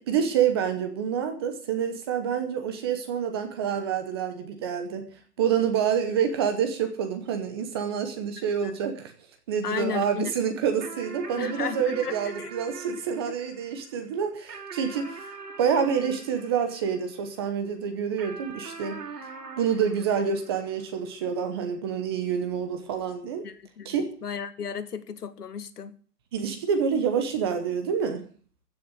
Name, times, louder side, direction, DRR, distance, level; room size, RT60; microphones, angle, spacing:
voice 1, 0.0-5.1 5.4-9.1 9.5-15.2 15.6-19.0 19.6-23.4 23.8-24.1 26.3-28.2, right 7 dB, 15° right, 0.9 m, -27 dB
voice 2, 8.4-8.8 9.6-10.3 11.4-12.5 13.3-13.4 23.4-24.0 24.2-26.0, left 7 dB, 70° left, 1.7 m, -34 dB
sound 1, 10.8-17.5 18.2-21.0, right 4 dB, 80° right, 4.6 m, -43 dB
15.5 x 6.9 x 8.0 m
hypercardioid pair, 160°, 48 cm